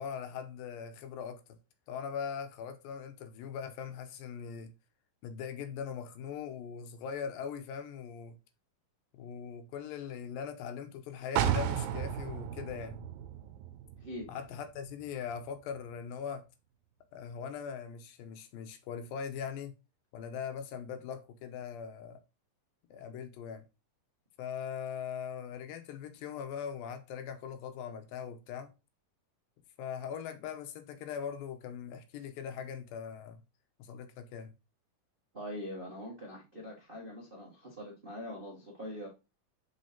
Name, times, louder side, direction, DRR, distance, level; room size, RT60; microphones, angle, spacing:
voice 1, 0.0-1.4 1.9-4.7 5.2-8.4 9.1-13.0 14.3-16.4 17.1-19.7 20.1-22.2 22.9-23.6 24.4-28.7 29.8-33.4 33.8-34.5, left 7 dB, 85° left, 2.5 m, -40 dB
sound 1, 11.4-15.1 15.5-15.6, right 9 dB, 85° right, 2.4 m, -34 dB
voice 2, 14.0-14.3 35.3-39.1, equal, 55° right, 0.5 m, -43 dB
6.3 x 5.6 x 2.8 m
omnidirectional pair, 4.1 m